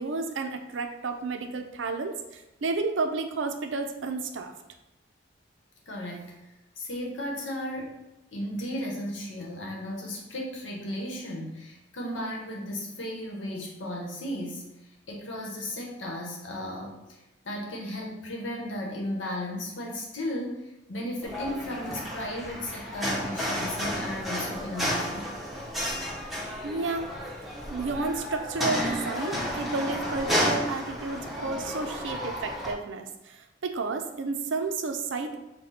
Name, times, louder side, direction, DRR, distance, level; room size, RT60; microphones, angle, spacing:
voice 1, 0.0-4.5 26.6-27.1 27.7-35.4, right 3 dB, 80° right, 6 dB, 0.5 m, -31 dB
voice 2, 5.9-6.4 6.8-8.0 8.3-14.7 15.1-17.0 17.4-20.6 20.9-25.3, left 1 dB, 85° left, -1 dB, 1.0 m, -35 dB
sound 1, 21.2-32.7, equal, ahead, 0.8 m, -32 dB
5.8 x 2.2 x 4.1 m, 0.96 s
head